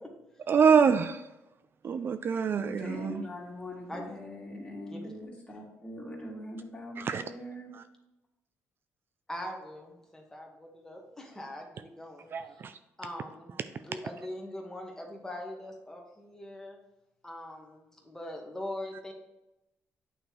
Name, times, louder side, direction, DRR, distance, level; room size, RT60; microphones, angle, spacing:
voice 1, 0.5-1.2 1.8-3.2 7.1-7.2 12.3-12.7, right 6 dB, 45° right, 0.3 m, -25 dB
voice 2, 2.6-7.7, left 1 dB, 25° left, 2.2 m, -41 dB
voice 3, 9.3-12.3 13.0-16.8 17.2-19.1, left 1 dB, 10° left, 1.4 m, -42 dB
8.9 x 3.3 x 4.5 m
cardioid pair, 105°, 5 cm